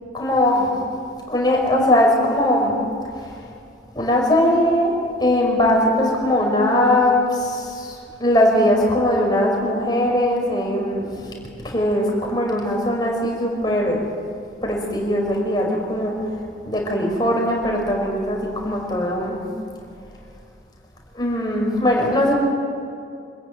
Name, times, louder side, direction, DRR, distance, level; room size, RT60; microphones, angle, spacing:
voice 1, 0.1-0.7 1.3-2.7 3.2-3.4 3.9-4.9 5.2-11.3 11.6-14.0 14.6-16.3 16.6-19.4 21.1-22.3, left 1 dB, 25° left, -1 dB, 5.2 m, -20 dB
27.0 x 15.0 x 9.5 m, 2.4 s
head